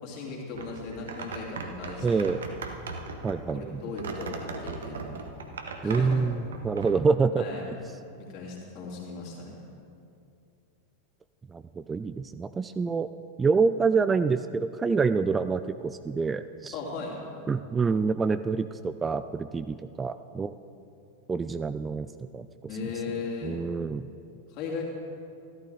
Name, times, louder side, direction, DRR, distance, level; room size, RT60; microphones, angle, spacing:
voice 1, 0.0-2.3 3.5-5.1 5.8-6.2 6.8-6.9 7.4-7.6 8.2-9.5 16.7-17.2 22.7-23.5 24.5-24.8, left 4 dB, 45° left, -2 dB, 3.0 m, -37 dB
sound 1, 0.5-6.9, right 4 dB, 65° right, 1.0 m, -38 dB
voice 2, 2.0-2.4 3.2-3.8 5.8-7.8 11.5-13.1 13.4-16.7 17.5-20.5 21.3-22.1 22.3-22.5 23.4-24.1, right 4 dB, 15° right, 12 dB, 0.3 m, -27 dB
14.0 x 12.5 x 4.0 m, 2.5 s
figure-of-eight pair, 90°, 0 cm